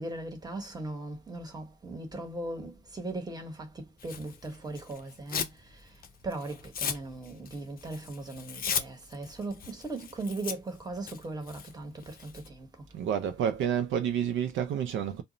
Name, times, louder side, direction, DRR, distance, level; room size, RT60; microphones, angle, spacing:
voice 1, 0.0-12.9, right 2 dB, 20° right, 1.0 m, -39 dB
Tearing, 4.0-5.6 5.9-12.5, left 7 dB, 45° left, 0.5 m, -37 dB
voice 2, 12.9-15.2, right 9 dB, 75° right, 0.5 m, -29 dB
2.1 x 2.0 x 3.7 m
cardioid pair, 90°, 20 cm